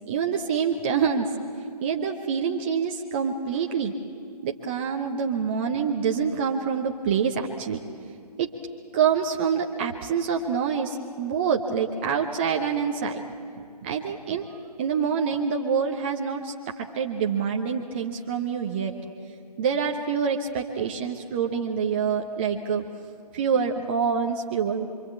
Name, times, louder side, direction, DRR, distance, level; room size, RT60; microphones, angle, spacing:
voice 1, 0.1-1.3 1.8-3.9 4.4-7.8 8.4-8.5 8.9-13.2 13.6-18.9 19.6-22.8 23.3-24.9, right 6 dB, 15° right, 1 dB, 0.8 m, -26 dB
26.0 x 24.5 x 8.4 m, 2.4 s
figure-of-eight pair, 145°, 21 cm